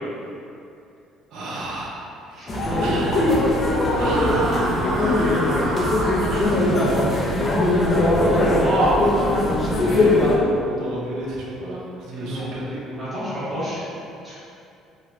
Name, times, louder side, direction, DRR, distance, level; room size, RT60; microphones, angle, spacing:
voice 1, 1.3-2.5 2.8-7.1 8.2-8.5 9.5-10.3 10.6-13.0, right 1 dB, 65° right, -5 dB, 0.6 m, -31 dB
sound 1, 2.5-10.4, left 1 dB, 20° left, 0.4 m, -20 dB
voice 2, 8.3-8.9 12.0-12.5 13.0-13.8 14.2-14.3, right 1 dB, 15° right, -11 dB, 1.0 m, -27 dB
3.1 x 2.4 x 2.8 m, 2.6 s
cardioid pair, 170°, 0 cm